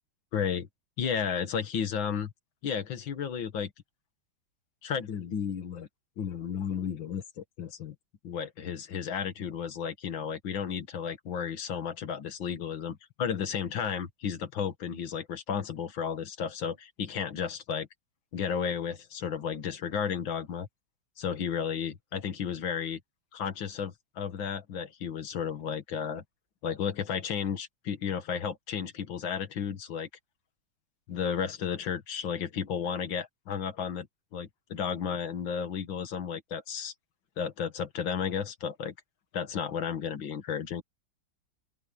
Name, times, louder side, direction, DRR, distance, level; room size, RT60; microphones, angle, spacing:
voice 1, 0.3-0.7 1.0-2.3 2.6-3.7 4.8-5.9 6.2-8.0 8.2-17.9 18.3-20.7 21.2-23.0 23.3-26.2 26.6-30.1 31.1-34.1 34.3-36.9 37.4-38.9 39.3-40.8, left 7 dB, 85° left, 2.2 m, -33 dB
open air
omnidirectional pair, 2.1 m